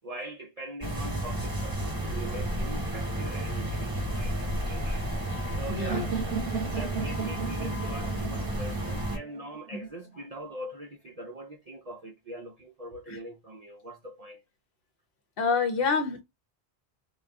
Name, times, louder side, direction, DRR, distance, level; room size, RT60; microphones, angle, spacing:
voice 1, 0.0-5.2 5.5-6.2 6.6-14.4, right 1 dB, 45° right, 0.5 m, -42 dB
sound 1, 0.8-9.2, equal, 20° right, 0.9 m, -32 dB
voice 2, 5.7-6.1 9.7-9.9 13.1-13.2 15.4-16.2, left 4 dB, 60° left, 0.9 m, -27 dB
sound 2, 5.9-9.8, right 6 dB, 80° right, 0.9 m, -35 dB
2.5 x 2.3 x 3.4 m
omnidirectional pair, 1.1 m